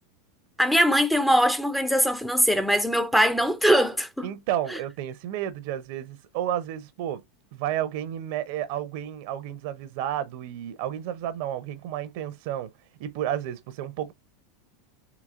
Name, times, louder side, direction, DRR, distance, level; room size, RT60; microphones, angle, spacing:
voice 1, 0.6-4.3 4.7-4.8, equal, ahead, 0.5 m, -22 dB
voice 2, 4.2-7.2 7.5-12.7 13.0-14.1, right 11 dB, 60° right, 0.6 m, -31 dB
4.0 x 2.8 x 2.5 m
hypercardioid pair, 100°, 0 cm